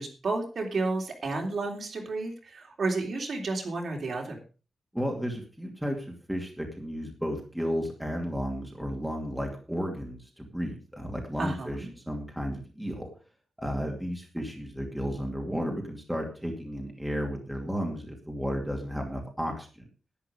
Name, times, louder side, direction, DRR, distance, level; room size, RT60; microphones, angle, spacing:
voice 1, 0.0-4.4 11.4-11.9, right 3 dB, 45° right, 2 dB, 3.3 m, -31 dB
voice 2, 4.9-13.1 13.6-19.7, equal, ahead, 1 dB, 2.5 m, -33 dB
11.5 x 11.0 x 5.1 m, 0.35 s
wide cardioid pair, 175°, 0 cm